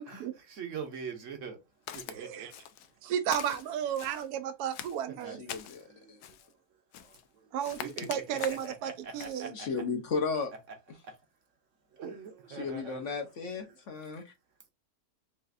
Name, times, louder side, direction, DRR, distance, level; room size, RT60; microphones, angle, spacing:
voice 1, 0.0-1.6 2.1-2.5 5.2-5.4 5.9-6.2 7.0-7.5 7.8-9.7 11.0-11.1 11.9-13.3 13.6-13.8, right 6 dB, 60° right, 1.1 m, -43 dB
Walk footsteps, 1.9-2.2 2.5-2.9 3.3-4.3 4.7-5.8 6.2-6.5 6.9-7.3 7.6-8.7 9.2-9.4, left 10 dB, 85° left, 1.1 m, -43 dB
voice 2, 2.1-2.5 3.0-5.4 7.5-9.5, right 9 dB, 80° right, 1.1 m, -33 dB
voice 3, 5.3-6.2 9.5-10.5 12.5-14.3, left 4 dB, 60° left, 1.0 m, -35 dB
5.6 x 2.5 x 2.5 m
omnidirectional pair, 1.6 m